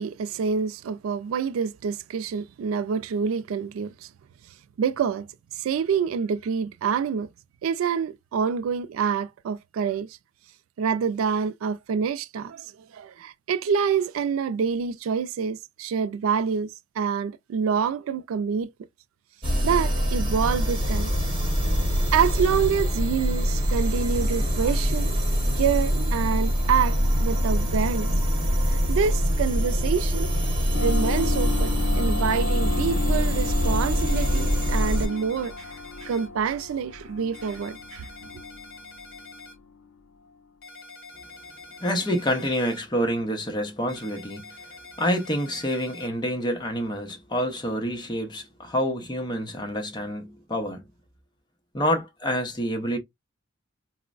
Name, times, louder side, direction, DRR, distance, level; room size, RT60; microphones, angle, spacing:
voice 1, 0.0-4.1 4.8-5.3 5.5-7.3 7.6-10.2 10.8-18.7 19.6-21.1 21.6-21.8 22.1-25.2 25.6-28.1 28.7-30.3 30.8-35.7 36.0-38.1, right 6 dB, 90° right, 0.3 m, -27 dB
sound 1, 19.4-35.1, equal, 25° right, 1.1 m, -24 dB
sound 2, 30.7-39.9, left 4 dB, 90° left, 0.5 m, -34 dB
sound 3, 34.1-36.3 37.3-39.5 40.6-42.8 43.9-46.1, left 3 dB, 50° left, 1.1 m, -45 dB
voice 2, 41.8-44.6 45.0-50.9 51.7-53.0, equal, 20° left, 0.6 m, -27 dB
4.3 x 2.1 x 2.4 m
head